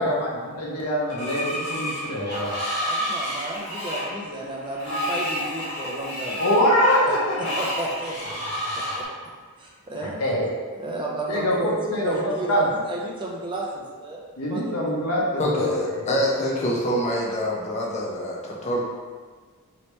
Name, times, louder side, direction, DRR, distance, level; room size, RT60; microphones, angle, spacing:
voice 1, 0.0-2.5 6.4-7.4 8.4-8.9 10.0-10.5 11.3-12.7 14.4-16.1, equal, 90° left, -4 dB, 0.8 m, -24 dB
Screech, 1.1-9.0, equal, 55° left, 1.2 m, -30 dB
voice 2, 2.8-6.4 7.4-8.8 9.6-10.2 10.7-14.6, right 1 dB, 20° right, -3 dB, 0.4 m, -32 dB
voice 3, 15.4-18.8, equal, 30° left, -4 dB, 0.6 m, -25 dB
3.2 x 2.8 x 3.1 m, 1.5 s
head